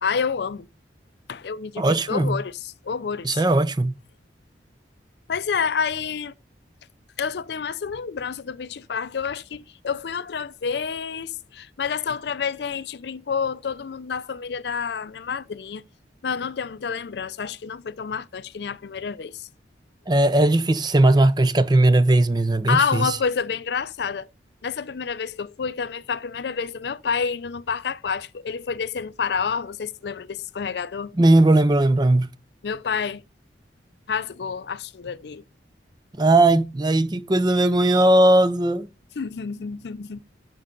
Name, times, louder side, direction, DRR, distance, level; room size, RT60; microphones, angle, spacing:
voice 1, 0.0-0.7 1.3-3.4 5.3-6.3 7.2-15.8 16.2-19.5 22.7-24.3 24.6-31.1 32.6-33.2 34.1-35.4 39.2-40.2, left 6 dB, 65° left, 0.5 m, -28 dB
voice 2, 1.8-2.4 3.2-3.9 20.1-23.2 31.2-32.3 36.1-38.9, right 2 dB, 25° right, 0.6 m, -18 dB
12.5 x 5.4 x 3.8 m
head